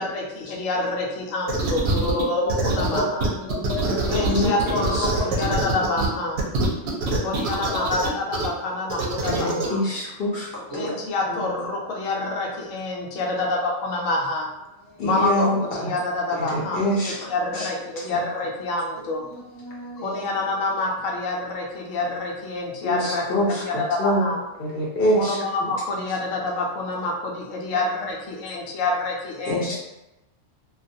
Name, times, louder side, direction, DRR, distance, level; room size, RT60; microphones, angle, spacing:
voice 1, 0.0-3.3 4.0-6.4 7.2-9.8 10.7-14.5 15.0-19.2 20.0-24.4 25.2-29.8, left 2 dB, 85° left, 0 dB, 1.0 m, -27 dB
sound 1, 1.5-2.2 2.5-6.1 6.4-8.5 8.9-9.7, right 3 dB, 65° right, 0.7 m, -24 dB
voice 2, 2.4-4.4 7.7-7.8 10.7-11.0 14.9-15.1 17.5-17.6 19.3-20.3 25.2-25.4 27.7-27.9, equal, 20° right, -8 dB, 0.9 m, -33 dB
voice 3, 4.3-5.1 9.2-10.5 11.3-11.4 15.0-15.9 16.4-17.3 17.5-17.7 18.1-18.2 22.8-24.3 24.6-25.4 29.5-29.8, equal, 60° left, -5 dB, 0.7 m, -25 dB
2.3 x 2.2 x 2.6 m, 0.94 s
omnidirectional pair, 1.3 m